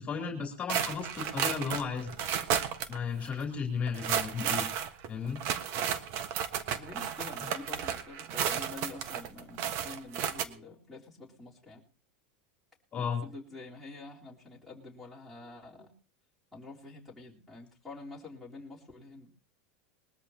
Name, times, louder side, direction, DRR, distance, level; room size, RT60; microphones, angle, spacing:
voice 1, 0.0-2.2 2.9-4.6 5.1-5.4 12.9-13.2, left 6 dB, 25° left, 2 dB, 3.2 m, -34 dB
sound 1, 0.7-3.0 3.2-3.3 3.9-10.4, right 8 dB, 50° right, 1.4 m, -33 dB
voice 2, 6.8-11.8 12.9-15.9 16.5-19.3, left 3 dB, ahead, -7 dB, 3.8 m, -47 dB
21.0 x 13.5 x 2.9 m, 0.35 s
supercardioid pair, 135°, 6 cm